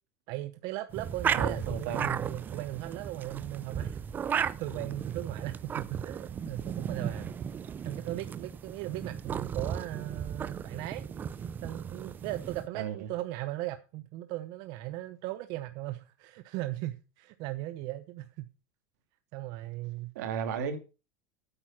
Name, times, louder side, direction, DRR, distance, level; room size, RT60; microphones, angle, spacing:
voice 1, 0.3-7.3 7.8-11.1 11.6-18.5 19.3-20.1, right 16 dB, 50° right, 0.8 m, -38 dB
sound 1, 0.9-12.7, right 7 dB, 20° right, 0.5 m, -35 dB
voice 2, 1.3-2.1 4.7-4.9 12.7-13.0 20.1-20.8, right 6 dB, 80° right, 2.8 m, -34 dB
8.9 x 8.7 x 6.0 m
supercardioid pair, 150°, 9 cm